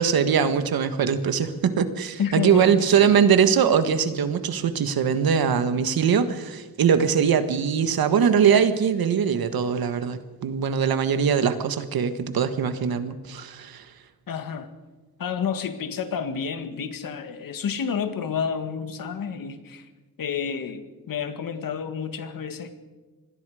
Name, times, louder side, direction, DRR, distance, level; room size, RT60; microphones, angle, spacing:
voice 1, 0.0-13.9, right 7 dB, 65° right, 10 dB, 1.6 m, -22 dB
voice 2, 2.2-3.2 14.3-14.7 15.2-19.9 20.2-22.7, left 7 dB, 60° left, 8 dB, 1.9 m, -30 dB
26.0 x 20.5 x 5.0 m, 1.2 s
wide cardioid pair, 155°, 38 cm